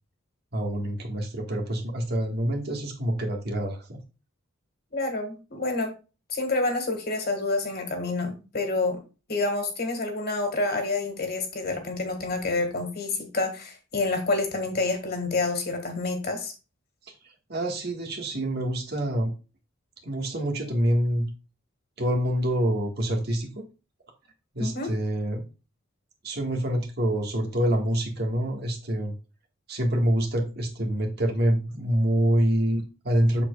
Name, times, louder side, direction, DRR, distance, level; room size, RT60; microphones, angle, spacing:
voice 1, 0.5-4.0 17.1-19.3 20.0-21.2 22.0-23.6 24.5-25.4 26.2-29.1 29.7-33.4, equal, 50° right, 3 dB, 1.6 m, -26 dB
voice 2, 4.9-5.9 6.3-9.0 9.3-16.5 24.6-24.9, left 3 dB, 50° left, 5 dB, 1.8 m, -28 dB
7.4 x 6.6 x 2.3 m, 0.31 s
head